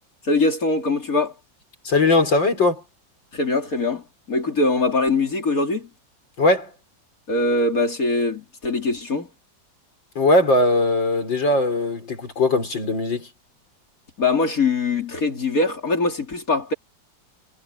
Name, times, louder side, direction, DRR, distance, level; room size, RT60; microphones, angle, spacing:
voice 1, 0.2-1.3 3.3-5.9 7.3-9.3 14.2-16.7, left 3 dB, 45° left, 3.8 m, -22 dB
voice 2, 1.8-2.8 6.4-6.7 10.2-13.3, left 2 dB, 75° left, 5.4 m, -19 dB
omnidirectional pair, 2.1 m